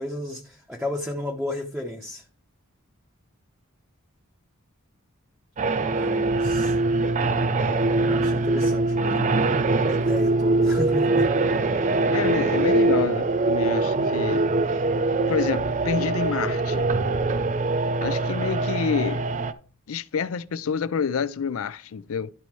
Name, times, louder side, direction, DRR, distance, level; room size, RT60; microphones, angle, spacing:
voice 1, 0.0-2.2 5.9-6.8 7.8-9.4 9.8-11.3, left 1 dB, 5° right, 0.7 m, -33 dB
sound 1, 5.6-19.5, right 2 dB, 35° right, 0.5 m, -23 dB
voice 2, 12.1-14.5 15.3-16.9 18.0-19.2 19.9-22.3, left 6 dB, 70° left, 0.4 m, -28 dB
11.5 x 4.1 x 4.6 m
head